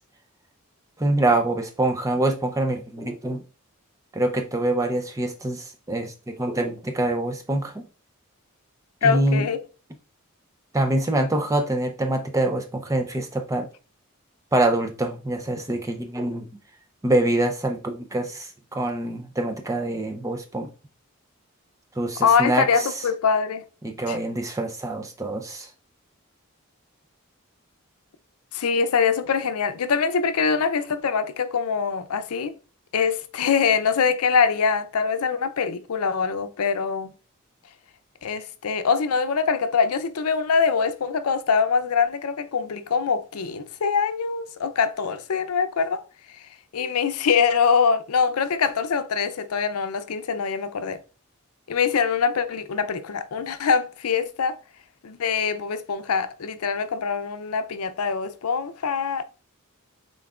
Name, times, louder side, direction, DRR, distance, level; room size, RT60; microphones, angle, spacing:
voice 1, 1.0-3.4 4.1-7.9 9.0-9.4 10.7-13.7 14.5-16.5 17.0-20.7 22.0-22.9 23.8-25.7, right 1 dB, 15° right, 0.5 m, -25 dB
voice 2, 9.0-9.6 22.2-23.6 24.1-24.2 28.5-32.5 32.9-37.1 38.2-46.0 46.3-46.4 46.7-51.0 51.7-54.5 55.0-59.2, left 6 dB, 85° left, 0.5 m, -23 dB
5.8 x 3.8 x 2.4 m
head